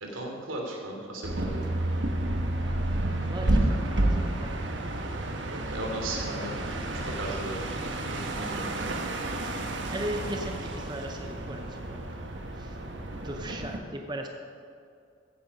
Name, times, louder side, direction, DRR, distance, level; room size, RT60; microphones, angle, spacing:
voice 1, 0.0-1.6 3.4-3.5 5.5-7.6 8.1-9.0, right 1 dB, 85° right, 0 dB, 2.8 m, -36 dB
sound 1, 1.2-13.8, right 1 dB, 60° right, 1.2 m, -30 dB
voice 2, 3.3-5.0 9.5-12.0 12.6-12.8 13.2-14.3, right 1 dB, 20° right, 3 dB, 0.7 m, -38 dB
15.0 x 9.1 x 5.4 m, 2.4 s
head